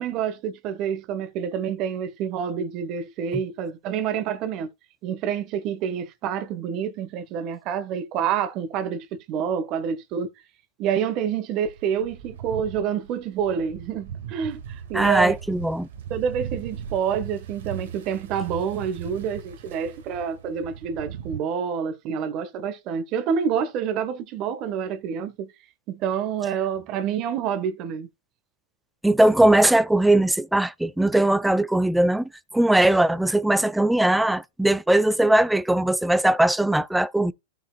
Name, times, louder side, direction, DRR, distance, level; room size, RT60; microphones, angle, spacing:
voice 1, 0.0-4.7 5.0-10.3 10.8-15.3 16.1-25.5 25.9-28.1, right 8 dB, 35° right, 1.3 m, -28 dB
sound 1, 11.7-21.4, right 8 dB, 70° right, 1.9 m, -38 dB
voice 2, 14.9-15.9 29.0-37.3, right 1 dB, 5° right, 0.4 m, -20 dB
14.5 x 5.7 x 2.3 m
hypercardioid pair, 145°, 0 cm